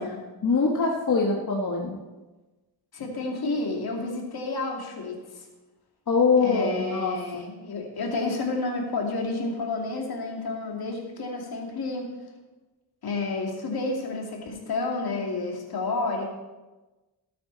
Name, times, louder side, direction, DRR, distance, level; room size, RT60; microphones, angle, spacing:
voice 1, 0.4-2.0 6.1-7.2, left 4 dB, 50° left, -1 dB, 1.6 m, -23 dB
voice 2, 2.9-5.4 6.4-12.1 13.0-16.3, left 3 dB, 65° left, 0 dB, 2.7 m, -30 dB
18.0 x 8.7 x 4.1 m, 1.2 s
cardioid pair, 85°, 40 cm